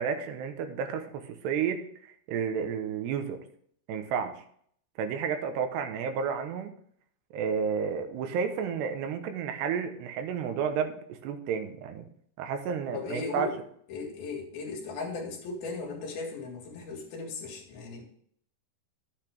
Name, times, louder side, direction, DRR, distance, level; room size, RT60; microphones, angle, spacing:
voice 1, 0.0-3.4 3.9-4.4 5.0-6.7 7.3-12.1 12.4-13.5, right 6 dB, 85° right, 6 dB, 3.2 m, -31 dB
voice 2, 12.9-13.5 13.9-18.0, left 3 dB, 65° left, 1 dB, 3.6 m, -37 dB
12.0 x 8.2 x 3.5 m, 0.63 s
omnidirectional pair, 4.9 m